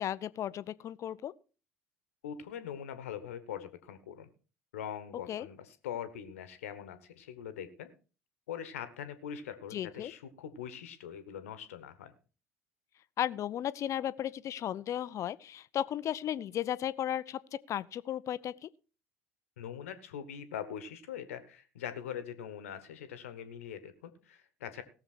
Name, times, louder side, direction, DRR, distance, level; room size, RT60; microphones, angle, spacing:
voice 1, 0.0-1.3 5.3-5.5 9.7-10.1 13.2-17.4 17.7-18.7, left 11 dB, 40° left, 0.6 m, -35 dB
voice 2, 2.2-4.3 4.7-7.9 8.5-12.1 19.6-24.8, left 9 dB, 75° left, 1.3 m, -42 dB
18.0 x 7.0 x 4.3 m
figure-of-eight pair, 65°, 8 cm